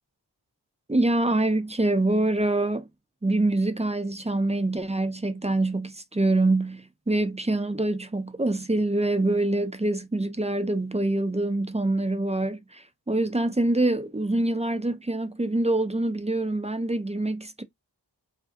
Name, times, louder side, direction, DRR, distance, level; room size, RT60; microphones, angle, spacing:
voice 1, 0.9-2.9 3.2-17.6, right 2 dB, 15° right, 0.4 m, -25 dB
2.5 x 2.3 x 3.5 m
wide cardioid pair, 55°, 41 cm